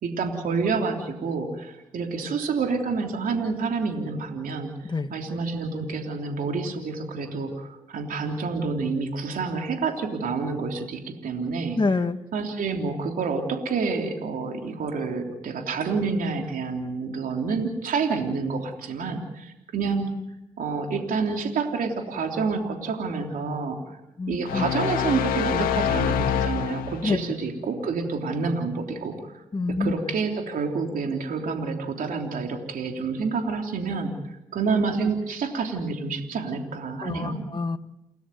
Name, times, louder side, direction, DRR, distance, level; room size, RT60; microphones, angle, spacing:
voice 1, 0.0-11.8 12.3-20.1 20.6-24.0 24.3-29.4 29.8-34.1 34.5-37.4, right 4 dB, 70° right, 3 dB, 3.3 m, -28 dB
voice 2, 11.8-12.2 24.2-24.7 27.0-27.2 29.5-29.9 37.0-37.8, left 3 dB, 30° left, 9 dB, 1.7 m, -26 dB
sound 1, 24.5-27.2, left 8 dB, 85° left, 2.0 m, -26 dB
29.5 x 13.5 x 9.3 m, 0.88 s
supercardioid pair, 50°, 15 cm